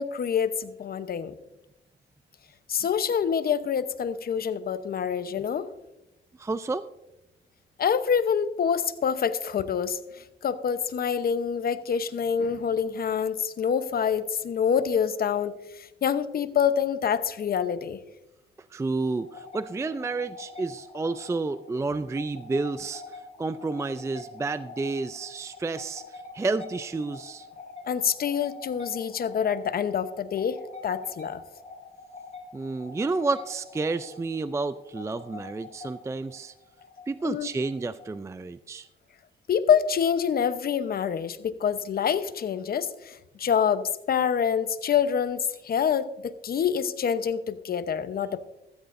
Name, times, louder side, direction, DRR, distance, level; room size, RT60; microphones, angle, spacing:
voice 1, 0.0-1.3 2.7-5.7 7.8-18.0 27.9-31.4 37.2-37.5 39.5-48.4, left 7 dB, 50° left, 12 dB, 0.9 m, -26 dB
voice 2, 6.4-6.8 18.7-23.0 23.4-26.0 26.3-27.5 32.5-36.5 37.1-38.9, right 3 dB, 15° right, 13 dB, 0.4 m, -30 dB
sound 1, 19.0-38.4, left 3 dB, 35° left, 2.2 m, -45 dB
15.0 x 14.0 x 2.6 m, 0.96 s
cardioid pair, 90°, 20 cm